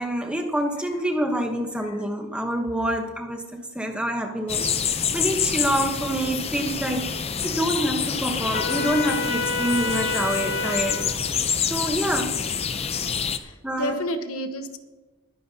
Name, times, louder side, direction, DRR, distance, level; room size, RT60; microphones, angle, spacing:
voice 1, 0.0-11.1 11.5-12.3 13.6-14.0, right 1 dB, 5° right, 3 dB, 1.0 m, -27 dB
sound 1, 4.5-13.4, left 7 dB, 25° left, 0.5 m, -27 dB
Trumpet, 8.5-11.0, left 3 dB, 45° left, 4.0 m, -28 dB
voice 2, 13.3-14.8, left 1 dB, 75° left, 7 dB, 1.1 m, -30 dB
21.5 x 9.5 x 2.8 m, 1.2 s
head